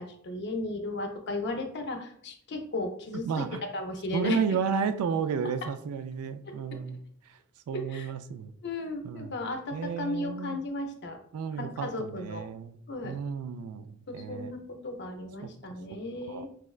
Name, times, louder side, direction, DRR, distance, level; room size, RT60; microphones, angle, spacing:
voice 1, 0.0-3.4 3.7-4.4 7.7-8.1 8.6-11.2 11.6-12.5 12.9-13.2 14.1-16.5, left 2 dB, 55° left, 5 dB, 0.5 m, -35 dB
voice 2, 3.2-3.6 4.1-7.0 7.7-8.5 9.0-9.3 9.7-10.6 11.3-12.8 13.0-14.5 15.4-15.5 16.3-16.5, right 6 dB, 80° right, 15 dB, 0.3 m, -32 dB
4.7 x 2.1 x 2.3 m, 0.63 s
head